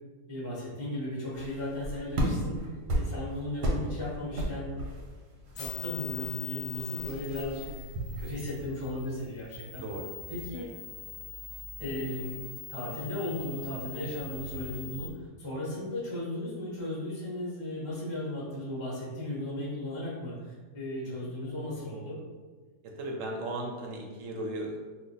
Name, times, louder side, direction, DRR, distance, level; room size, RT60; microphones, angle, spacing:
voice 1, 0.3-2.6 2.9-4.8 5.5-7.9 8.2-9.8 10.3-10.7 11.8-22.2, left 1 dB, 25° left, -7 dB, 0.6 m, -36 dB
sound 1, 1.3-8.3, right 1 dB, 85° right, 1.3 m, -35 dB
sound 2, 5.5-15.1, left 7 dB, 65° left, 0.9 m, -43 dB
voice 2, 9.8-10.1 10.5-10.7 21.0-21.3 22.8-24.8, right 1 dB, 65° right, 0 dB, 0.8 m, -37 dB
2.9 x 2.2 x 3.9 m, 1.4 s
omnidirectional pair, 1.7 m